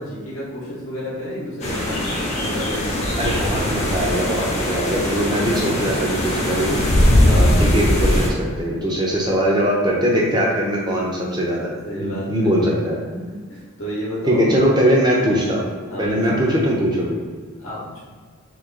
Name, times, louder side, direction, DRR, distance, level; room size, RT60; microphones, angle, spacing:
voice 1, 0.0-2.0 2.4-3.1 8.2-8.5 11.8-12.5 13.1-14.5 15.8-16.5 17.6-18.0, equal, 65° left, -7 dB, 0.9 m, -32 dB
sound 1, 1.6-8.3, left 1 dB, 30° left, 0.7 m, -20 dB
voice 2, 3.2-6.8 7.2-13.0 14.3-15.6 16.0-17.2, equal, 20° right, -4 dB, 0.6 m, -21 dB
3.0 x 2.9 x 3.8 m, 1.5 s
head